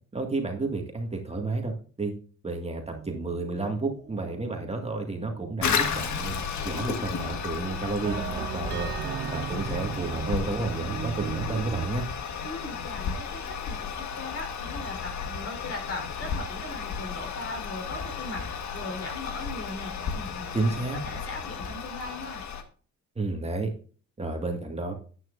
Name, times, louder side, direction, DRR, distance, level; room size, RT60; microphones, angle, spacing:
voice 1, 0.1-2.1 2.4-6.4 6.6-8.9 9.3-12.1 20.5-21.0 23.2-23.7 24.2-24.9, right 3 dB, 20° right, 3 dB, 1.9 m, -31 dB
sound 1, 2.8-11.9, right 10 dB, 40° right, 0.4 m, -38 dB
Toilet flush, 5.6-22.6, left 6 dB, 70° left, 1.6 m, -33 dB
voice 2, 12.4-20.5 21.0-22.4, left 2 dB, 50° left, 3 dB, 4.0 m, -39 dB
10.5 x 9.5 x 2.6 m, 0.41 s
cardioid pair, 90°, 30 cm